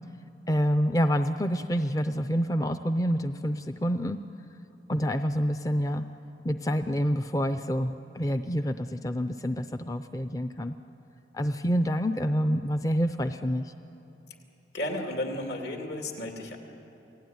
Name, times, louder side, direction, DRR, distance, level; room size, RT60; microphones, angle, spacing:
voice 1, 0.5-4.2 4.9-6.0 6.4-10.7 11.3-13.7, equal, 20° left, 9 dB, 0.5 m, -27 dB
voice 2, 14.7-16.6, left 1 dB, 75° left, 2 dB, 2.8 m, -33 dB
28.0 x 18.0 x 9.5 m, 3.0 s
head